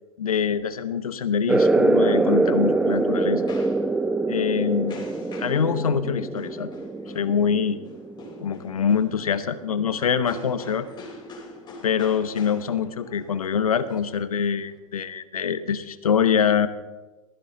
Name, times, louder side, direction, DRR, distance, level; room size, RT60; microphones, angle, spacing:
voice 1, 0.2-3.5 4.3-5.1 5.4-6.7 7.1-7.8 8.4-10.9 11.8-16.7, left 7 dB, 85° left, 12 dB, 1.0 m, -24 dB
sound 1, 1.5-8.6, right 2 dB, 5° right, 0.4 m, -24 dB
sound 2, 2.3-14.8, left 2 dB, 25° left, 3.9 m, -46 dB
16.0 x 14.0 x 3.8 m, 1.2 s
hypercardioid pair, 105°, 18 cm